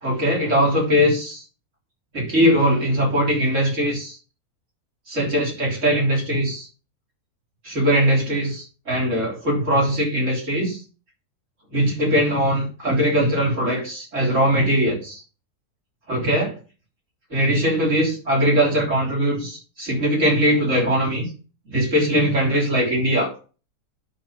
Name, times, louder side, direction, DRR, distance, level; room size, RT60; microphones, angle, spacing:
voice 1, 0.0-1.4 2.1-4.2 5.1-6.7 7.6-10.8 11.7-15.2 16.1-16.5 17.3-21.3 21.7-23.3, equal, 50° right, -3 dB, 3.9 m, -21 dB
10.5 x 3.9 x 5.7 m, 0.36 s
omnidirectional pair, 1.6 m